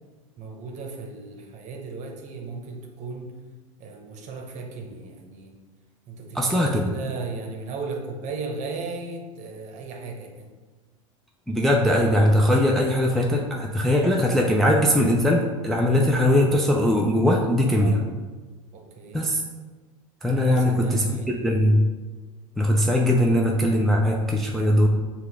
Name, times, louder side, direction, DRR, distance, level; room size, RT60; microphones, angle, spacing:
voice 1, 0.4-3.3 3.8-5.6 6.1-10.5 17.7-18.1 18.7-19.3 20.4-21.3, right 4 dB, 45° right, 2 dB, 0.9 m, -36 dB
voice 2, 6.3-6.9 11.5-18.0 19.1-19.4 20.2-21.8 22.6-24.9, left 1 dB, ahead, -1 dB, 0.3 m, -20 dB
5.6 x 2.3 x 3.4 m, 1.3 s
hypercardioid pair, 100°, 17 cm